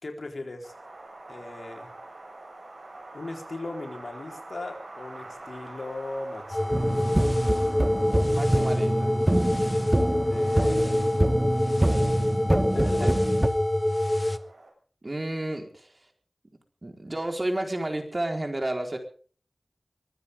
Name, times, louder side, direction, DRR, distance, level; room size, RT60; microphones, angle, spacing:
voice 1, 0.0-0.7 1.3-1.9 3.1-7.2 10.2-11.1 12.5-13.1, left 2 dB, 75° left, 3 dB, 4.2 m, -38 dB
Wind, 0.6-14.7, right 2 dB, 75° right, 7.3 m, -46 dB
sound 1, 6.5-14.4, left 1 dB, 25° left, 1.3 m, -26 dB
sound 2, 6.7-13.5, right 1 dB, 25° right, 1.7 m, -25 dB
voice 2, 8.3-9.2 13.0-13.1 15.0-15.9 16.8-19.0, right 1 dB, 40° right, 3 dB, 4.5 m, -31 dB
24.0 x 15.5 x 3.7 m, 0.43 s
wide cardioid pair, 60°, 0 cm